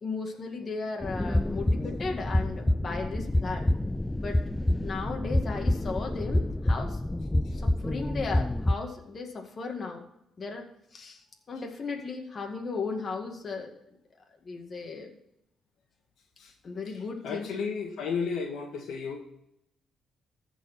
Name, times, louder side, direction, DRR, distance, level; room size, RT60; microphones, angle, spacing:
voice 1, 0.0-3.7 4.2-4.4 4.8-7.0 7.6-10.0 10.4-10.7 10.9-13.7 14.4-15.1 16.6-17.5, left 4 dB, 40° left, 2 dB, 1.9 m, -36 dB
sound 1, 1.0-8.7, left 1 dB, 10° left, 0.4 m, -28 dB
voice 2, 17.2-19.2, left 5 dB, 75° left, 2 dB, 1.7 m, -33 dB
14.5 x 4.9 x 5.9 m, 0.80 s
cardioid pair, 90°, 0 cm